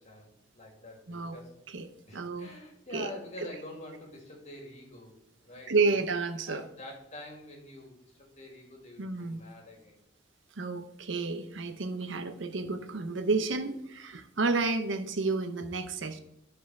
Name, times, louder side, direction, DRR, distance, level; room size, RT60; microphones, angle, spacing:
voice 1, 0.0-1.5 2.1-5.1 5.4-6.1 6.5-10.0, left 1 dB, 35° left, 0 dB, 2.4 m, -47 dB
voice 2, 2.1-2.5 2.9-3.1 5.7-6.6 9.0-9.4 10.6-16.2, right 3 dB, 70° right, 9 dB, 0.8 m, -30 dB
12.5 x 4.9 x 4.7 m, 0.78 s
head